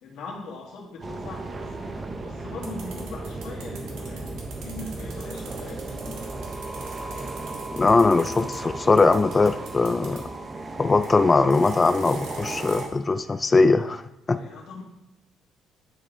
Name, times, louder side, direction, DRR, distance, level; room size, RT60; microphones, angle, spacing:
voice 1, 0.0-1.8 2.2-6.4 14.3-14.8, left 3 dB, 75° left, -3 dB, 1.9 m, -40 dB
sound 1, 1.0-12.9, right 2 dB, 25° right, 0.6 m, -35 dB
sound 2, 2.6-8.6 9.0-10.2 11.0-11.1 11.5-12.8, right 5 dB, 85° right, 1.5 m, -44 dB
voice 2, 7.7-10.2 10.8-14.0 14.3-14.4, left 3 dB, 20° left, 11 dB, 0.3 m, -20 dB
9.6 x 4.8 x 3.3 m, 0.94 s
cardioid pair, 125°, 0 cm